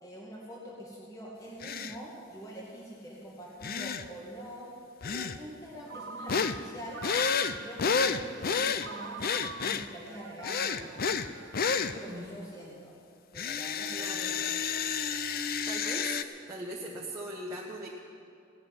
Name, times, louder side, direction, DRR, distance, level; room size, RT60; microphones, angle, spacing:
voice 1, 0.0-4.7 5.0-7.1 7.5-11.0 11.8-13.0 13.3-14.4, equal, 15° left, -5 dB, 2.0 m, -45 dB
sound 1, 1.6-2.0 3.6-4.1 5.0-5.4 6.3-6.6 7.0-8.9 9.2-9.9 10.4-11.3 11.5-11.9 13.3-16.2, left 6 dB, 45° left, 0.5 m, -30 dB
Ringtone, 5.9-8.0 8.8-12.1, right 5 dB, 60° right, 0.6 m, -45 dB
voice 2, 12.0-12.3 13.9-14.4 15.2-16.2 16.5-17.9, right 1 dB, 15° right, -4 dB, 1.3 m, -40 dB
17.0 x 7.2 x 9.4 m, 2.4 s
head